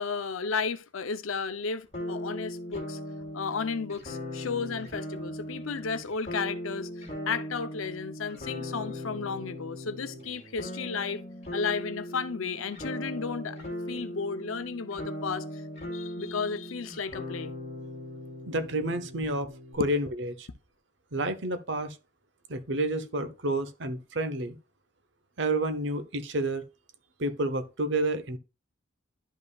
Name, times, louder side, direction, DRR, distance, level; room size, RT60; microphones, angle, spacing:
voice 1, 0.0-3.0 3.3-11.2 11.5-13.6 13.9-15.5 15.9-17.5, left 5 dB, 90° left, 0.7 m, -33 dB
sound 1, 1.9-19.7, left 1 dB, 35° left, 2.9 m, -39 dB
voice 2, 18.5-19.5 19.7-20.5 21.1-22.0 22.5-24.6 25.4-26.6 27.2-28.4, right 1 dB, 60° right, 0.9 m, -29 dB
11.5 x 5.4 x 2.4 m
head